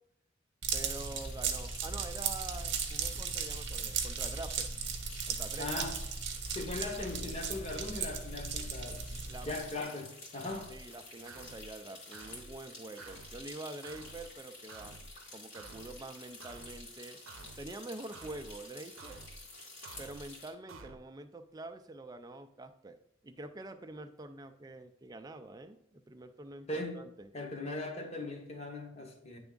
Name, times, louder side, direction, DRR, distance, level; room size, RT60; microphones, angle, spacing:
sound 1, 0.6-9.8, right 6 dB, 60° right, 0.9 m, -37 dB
voice 1, 0.7-4.7 5.3-5.7 9.3-9.5 10.7-15.0 15.3-17.2 17.6-19.2 20.0-23.0 23.2-27.3, right 2 dB, 20° right, 0.3 m, -46 dB
sound 2, 0.8-20.5, left 2 dB, 60° left, 2.2 m, -51 dB
voice 2, 5.6-6.0 6.5-9.0 9.4-10.7 26.7-27.1 27.3-29.4, left 2 dB, 30° left, 0.9 m, -39 dB
sound 3, 10.4-10.8 11.3-11.7 12.1-12.5 13.0-13.4 13.8-14.3 14.7-15.1 15.5-16.0 16.4-16.8 17.3-17.7 18.1-18.5 19.0-19.4 19.8-20.3 20.7-21.0, right 4 dB, 85° right, 0.6 m, -51 dB
9.1 x 3.5 x 3.8 m
head